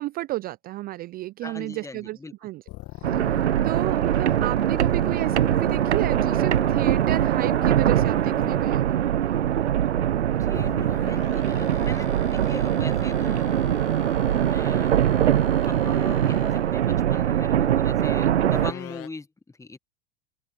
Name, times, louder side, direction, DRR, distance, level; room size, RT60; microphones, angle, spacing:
voice 1, 0.0-2.6 2.9-8.9, right 17 dB, 30° right, 0.4 m, -32 dB
voice 2, 1.4-2.3 10.4-15.3 15.6-19.8, left 3 dB, 10° left, 1.4 m, -40 dB
sound 1, 2.7-8.8 10.5-16.8 18.5-19.1, left 19 dB, 45° left, 1.8 m, -41 dB
sound 2, 3.0-18.7, right 10 dB, 85° right, 0.8 m, -22 dB
open air
hypercardioid pair, 90°, 33 cm